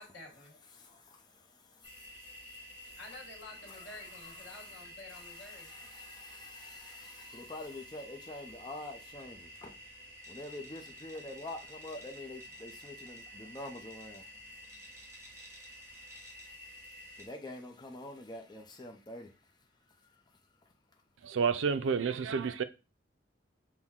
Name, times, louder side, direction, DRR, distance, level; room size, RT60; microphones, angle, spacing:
voice 1, 0.0-0.5 3.0-5.7, left 2 dB, 75° left, 1.6 m, -50 dB
voice 2, 0.7-3.0 3.7-4.8 5.1-20.4, left 2 dB, 20° left, 0.6 m, -48 dB
sound 1, 1.8-17.3, equal, 15° right, 1.1 m, -51 dB
voice 3, 21.2-22.6, right 6 dB, 90° right, 0.4 m, -30 dB
6.2 x 2.1 x 3.6 m
head